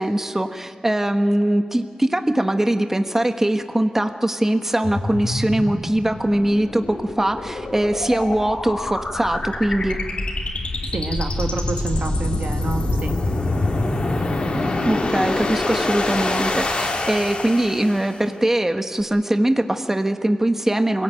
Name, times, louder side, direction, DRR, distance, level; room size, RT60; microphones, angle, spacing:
voice 1, 0.0-10.0 14.8-21.0, right 1 dB, 15° right, 6 dB, 1.4 m, -21 dB
sound 1, 4.8-18.2, left 2 dB, 60° left, 3.0 m, -25 dB
voice 2, 10.9-13.1, right 3 dB, 80° right, 5 dB, 1.6 m, -28 dB
25.5 x 17.5 x 9.0 m, 2.2 s
wide cardioid pair, 75°, 2 cm